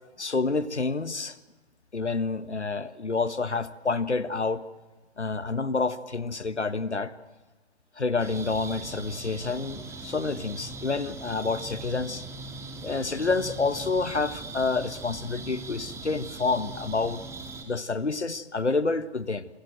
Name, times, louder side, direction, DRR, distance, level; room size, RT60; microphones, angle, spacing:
voice 1, 0.2-1.4 1.9-4.6 5.2-7.1 8.0-12.2 12.8-17.2 17.7-19.5, left 3 dB, 80° left, 14 dB, 1.6 m, -28 dB
sound 1, 8.2-17.6, right 3 dB, 10° right, 2.7 m, -40 dB
27.0 x 22.0 x 7.8 m, 1.3 s
figure-of-eight pair, 125°, 34 cm